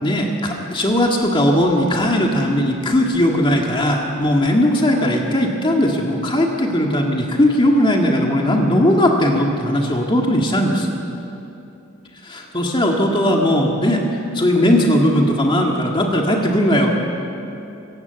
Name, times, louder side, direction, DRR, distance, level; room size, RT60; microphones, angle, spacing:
voice 1, 0.0-10.9 12.2-14.0 14.3-17.0, left 1 dB, 25° left, 0 dB, 2.0 m, -18 dB
26.5 x 16.0 x 8.1 m, 2.8 s
head